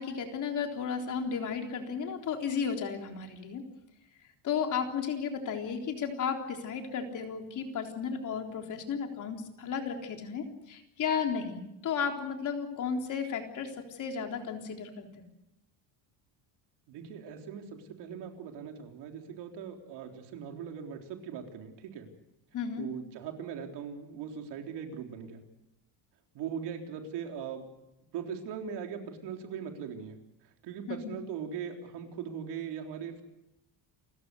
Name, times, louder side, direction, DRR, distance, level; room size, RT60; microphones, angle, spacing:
voice 1, 0.0-3.6 4.4-15.3 22.5-22.9 30.9-31.2, left 6 dB, 45° left, 3 dB, 3.8 m, -34 dB
voice 2, 16.9-22.1 22.8-25.4 26.3-27.7 28.1-33.2, right 7 dB, 70° right, 3 dB, 3.8 m, -40 dB
29.5 x 14.5 x 8.2 m, 0.88 s
cardioid pair, 155°, 42 cm